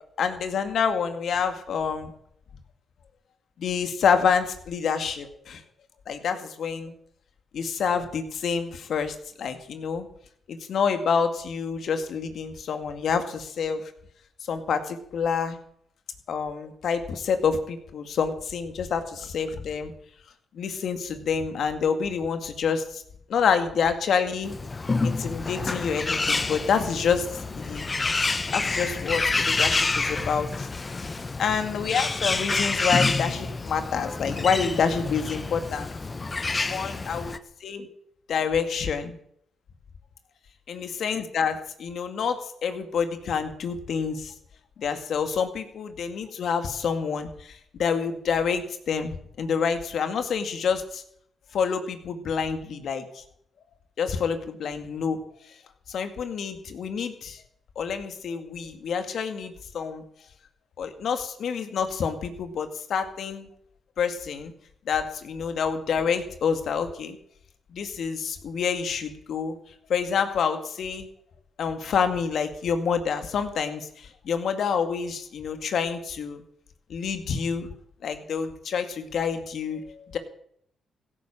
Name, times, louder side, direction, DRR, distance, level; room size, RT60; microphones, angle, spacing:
voice 1, 0.2-2.1 3.6-5.6 6.1-6.9 7.5-10.1 10.5-13.9 14.5-15.6 16.3-19.9 20.5-23.0 23.3-24.5 25.0-27.9 28.5-30.7 31.4-35.9 36.6-37.3 37.6-37.9 38.3-39.2 40.7-44.3 44.8-51.0 51.5-53.2 54.0-55.2 55.9-57.4 57.8-60.0 60.8-63.5 64.0-64.5 64.9-67.2 67.7-69.6 69.9-71.1 71.6-76.4 76.9-77.7 78.0-80.2, left 6 dB, 70° left, 8 dB, 2.1 m, -27 dB
Bird, 24.4-37.4, left 3 dB, 35° left, 1.1 m, -28 dB
16.0 x 10.5 x 7.4 m, 0.67 s
supercardioid pair, 60°, 0 cm